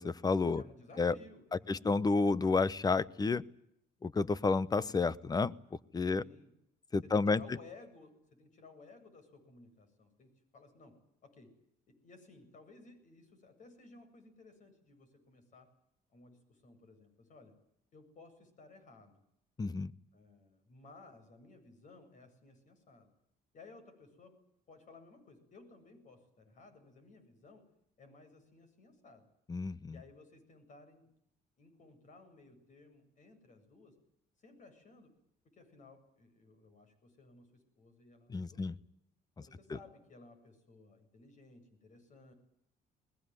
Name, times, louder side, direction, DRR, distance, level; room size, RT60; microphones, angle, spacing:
voice 1, 0.0-0.6 1.0-1.2 1.7-3.4 4.0-5.5 5.9-6.2 6.9-7.4 19.6-19.9 29.5-30.0 38.3-38.7, left 4 dB, 25° left, 19 dB, 1.0 m, -30 dB
voice 2, 0.5-2.2 6.2-6.5 7.0-11.0 11.2-11.5 11.9-15.7 16.1-17.6 17.9-19.2 20.1-23.1 23.5-24.4 24.7-27.7 28.0-29.3 29.9-31.2 31.6-34.0 34.4-35.1 35.5-38.8 39.4-42.3, left 3 dB, 50° left, 8 dB, 7.9 m, -58 dB
21.5 x 21.5 x 9.6 m, 0.76 s
cardioid pair, 110°, 17 cm